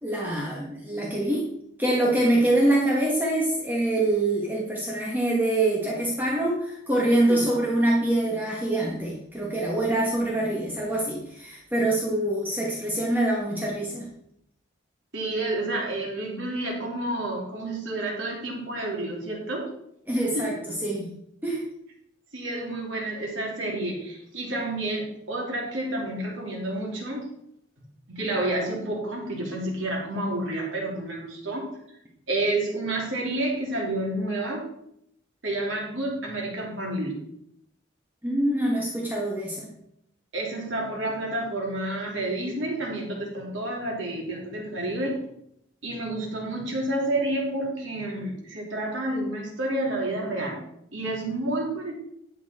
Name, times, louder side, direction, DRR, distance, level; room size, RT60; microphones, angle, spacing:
voice 1, 0.0-1.5 1.8-14.1 20.1-20.5 20.8-21.1 21.4-21.6 38.2-39.7, right 1 dB, 10° right, -4 dB, 1.6 m, -25 dB
voice 2, 15.1-19.7 20.3-20.4 22.3-27.2 28.1-31.7 32.3-34.6 35.4-37.2 40.3-45.2 45.8-50.6 50.9-51.9, right 1 dB, 75° right, -1 dB, 3.2 m, -29 dB
11.0 x 7.5 x 4.4 m, 0.76 s
head